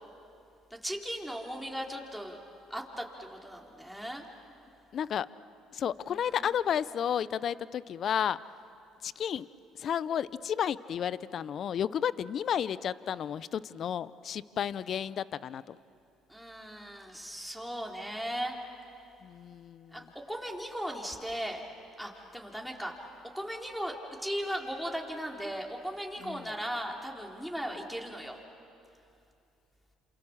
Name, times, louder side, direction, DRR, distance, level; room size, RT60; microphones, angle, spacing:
voice 1, 0.8-2.4 2.7-4.2 6.1-6.4 16.3-18.6 19.9-21.6 22.0-22.9 23.3-23.9 24.2-28.4, equal, ahead, 0 dB, 4.0 m, -37 dB
voice 2, 4.9-5.3 5.7-8.4 9.0-9.5 9.8-15.8 19.2-20.1 26.2-26.5, left 9 dB, 55° left, 18 dB, 0.6 m, -32 dB
28.5 x 27.5 x 7.3 m, 2.6 s
supercardioid pair, 70°, 0 cm